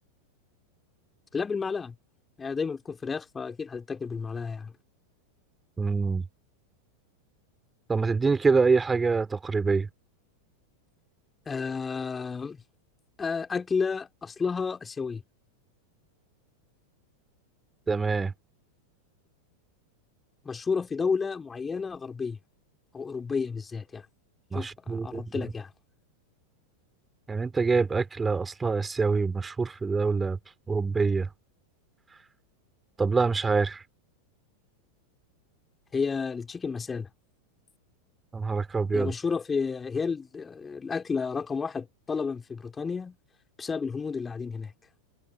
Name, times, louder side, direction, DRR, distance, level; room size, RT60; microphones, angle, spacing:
voice 1, 1.3-1.9 2.4-4.7 11.5-12.6 13.2-15.2 20.4-22.4 22.9-24.1 24.5-25.7 35.9-37.1 38.9-43.2 43.6-44.7, left 5 dB, 15° left, 2.8 m, -31 dB
voice 2, 5.8-6.2 7.9-9.9 17.9-18.3 24.5-25.5 27.3-30.4 30.7-31.3 33.0-33.8 38.3-39.1, right 4 dB, 15° right, 2.4 m, -25 dB
figure-of-eight pair, 90°, 0 cm